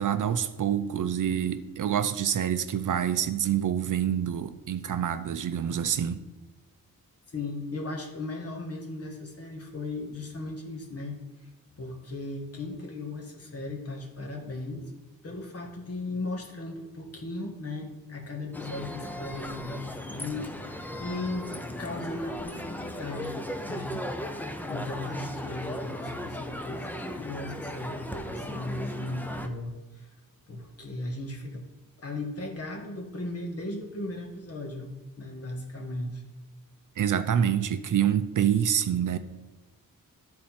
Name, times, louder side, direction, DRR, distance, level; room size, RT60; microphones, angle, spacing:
voice 1, 0.0-6.2 37.0-39.2, right 9 dB, 60° right, 11 dB, 0.5 m, -26 dB
voice 2, 7.3-11.2 11.8-14.9 15.2-23.4 23.7-24.0 24.4-30.1 30.5-31.6 32.0-34.9 35.2-36.2, left 2 dB, 40° left, 2 dB, 1.4 m, -37 dB
sound 1, 18.5-29.5, equal, 5° left, 0.5 m, -37 dB
12.5 x 4.3 x 4.3 m, 1.2 s
wide cardioid pair, 155°, 35 cm